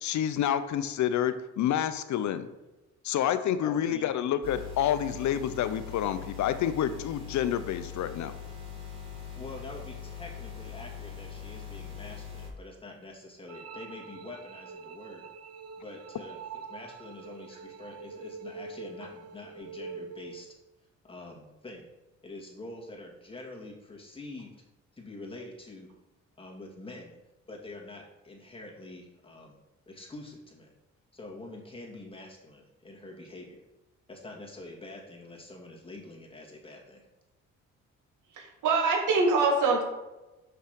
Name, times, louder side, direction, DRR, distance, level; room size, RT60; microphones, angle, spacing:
voice 1, 0.0-2.5 3.0-8.3, left 10 dB, 70° left, 12 dB, 0.7 m, -28 dB
voice 2, 3.6-4.1 9.4-15.3 15.8-20.5 21.0-21.9 22.2-24.5 24.9-25.9 26.4-27.2 27.5-29.6 29.9-30.7 31.1-33.6 34.1-37.1, left 2 dB, 20° left, -2 dB, 2.1 m, -45 dB
sound 1, 4.4-12.5, left 8 dB, 20° right, 2.4 m, -42 dB
sound 2, 13.5-20.5, right 4 dB, 55° right, 0.7 m, -44 dB
voice 3, 38.3-39.8, right 3 dB, 80° right, 1 dB, 1.9 m, -24 dB
6.0 x 5.6 x 5.1 m, 1.1 s
cardioid pair, 90°, 30 cm